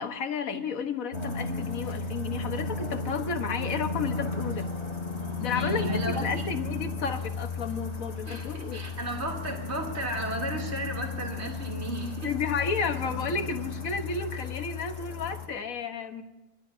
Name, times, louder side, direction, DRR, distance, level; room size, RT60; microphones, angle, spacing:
voice 1, 0.0-4.7 5.4-8.8 12.2-16.2, left 5 dB, 65° left, 7 dB, 1.6 m, -32 dB
sound 1, 1.1-15.5, left 4 dB, 45° left, 2.4 m, -34 dB
voice 2, 5.5-6.4 8.2-12.3, right 1 dB, 45° right, 1 dB, 3.3 m, -34 dB
25.0 x 20.0 x 2.7 m, 1.0 s
omnidirectional pair, 1.6 m